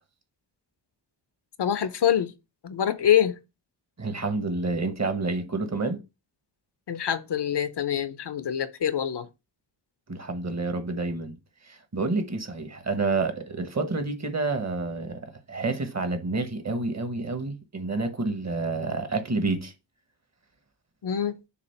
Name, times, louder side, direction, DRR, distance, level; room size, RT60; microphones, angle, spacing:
voice 1, 1.6-2.3 2.6-3.4 6.9-9.3 21.0-21.4, left 9 dB, 65° left, 0.8 m, -25 dB
voice 2, 4.0-6.0 10.1-11.4 11.6-19.7, right 3 dB, 35° right, 1.2 m, -29 dB
6.9 x 2.5 x 5.6 m
wide cardioid pair, 105°, 44 cm